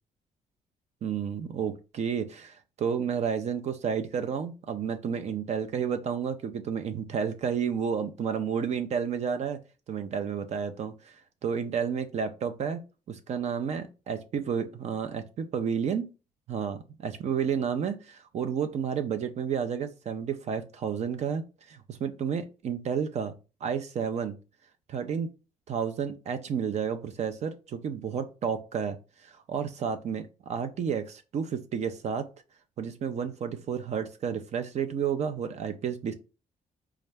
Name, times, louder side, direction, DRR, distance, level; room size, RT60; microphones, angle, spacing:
voice 1, 1.0-9.6 9.9-11.2 11.4-12.8 13.1-16.1 16.5-23.3 23.6-24.4 24.9-25.3 25.7-29.0 29.2-32.3 32.8-36.1, right 7 dB, 55° right, 9 dB, 0.5 m, -31 dB
4.1 x 2.4 x 3.3 m, 0.31 s
cardioid pair, 110°, 13 cm